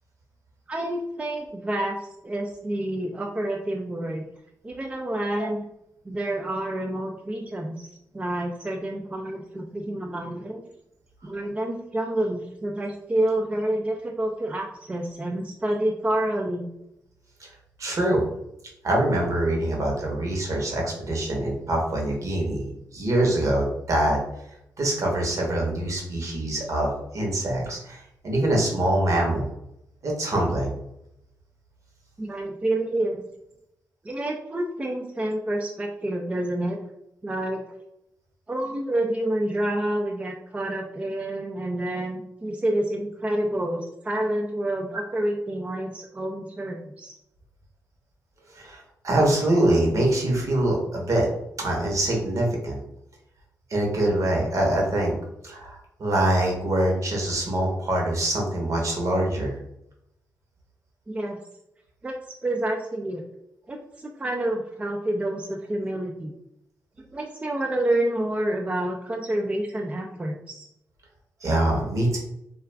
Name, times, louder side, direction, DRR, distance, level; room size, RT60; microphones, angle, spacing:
voice 1, 0.7-4.3 4.6-5.6 6.1-7.9 8.1-10.6 11.2-16.7 32.2-33.2 34.0-36.8 37.2-37.6 38.5-47.1 61.1-61.4 62.0-62.1 62.4-63.2 63.7-66.3 67.1-70.7, right 1 dB, 20° right, 1 dB, 0.3 m, -28 dB
voice 2, 17.8-18.2 18.8-24.2 24.8-29.5 30.0-30.7 48.5-51.3 51.6-52.8 53.7-55.1 55.4-59.5 71.4-72.2, right 1 dB, 55° right, -1 dB, 0.9 m, -24 dB
2.3 x 2.3 x 3.2 m, 0.82 s
cardioid pair, 75°, 6 cm